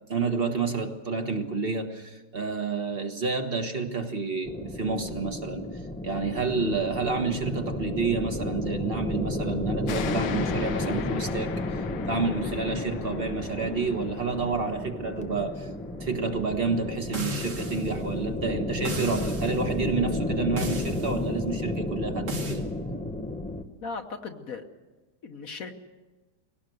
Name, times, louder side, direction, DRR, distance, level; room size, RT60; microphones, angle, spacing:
voice 1, 0.1-15.7 16.0-22.6, right 4 dB, 35° right, 5 dB, 1.5 m, -29 dB
sound 1, 4.5-23.6, left 1 dB, 10° left, 0.5 m, -32 dB
sound 2, 9.9-17.0, left 7 dB, 80° left, 1.5 m, -39 dB
sound 3, 17.1-17.9 18.8-19.6 20.6-21.1 22.3-22.6, equal, 75° right, 3.0 m, -35 dB
voice 2, 23.8-24.7 25.2-25.7, left 4 dB, 55° left, 5 dB, 1.4 m, -37 dB
22.0 x 18.0 x 7.8 m, 1.2 s
omnidirectional pair, 1.8 m